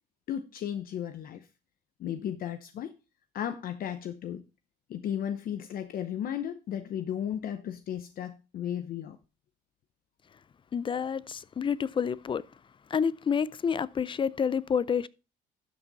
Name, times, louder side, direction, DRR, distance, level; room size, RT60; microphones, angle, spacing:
voice 1, 0.3-1.5 2.0-2.9 3.3-4.4 4.9-9.2, left 9 dB, 60° left, 0.8 m, -34 dB
voice 2, 10.7-12.4 12.9-15.1, left 7 dB, 30° left, 0.5 m, -29 dB
12.0 x 6.2 x 4.0 m
cardioid pair, 110°, 17 cm